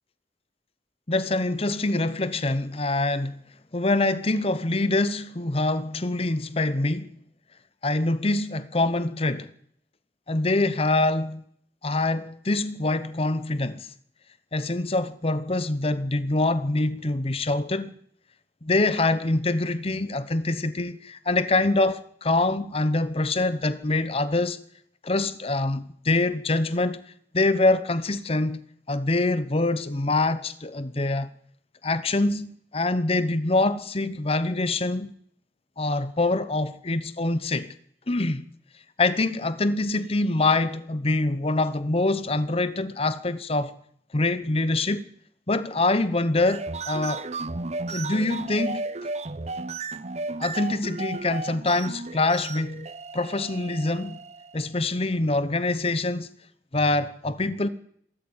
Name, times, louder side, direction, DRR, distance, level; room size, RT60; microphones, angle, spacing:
voice 1, 1.1-3.4 3.7-7.1 7.8-9.5 10.3-11.4 11.8-13.9 14.5-17.9 18.6-24.6 25.0-27.0 27.3-31.3 31.8-35.1 35.8-37.7 38.1-38.4 39.0-43.7 44.1-45.1 45.5-47.2 47.9-48.8 50.4-52.9 53.1-54.2 54.5-56.3 56.7-57.7, left 2 dB, 35° left, 1.0 m, -25 dB
sound 1, 46.3-54.6, right 3 dB, 40° right, 0.8 m, -34 dB
22.0 x 13.5 x 8.7 m
head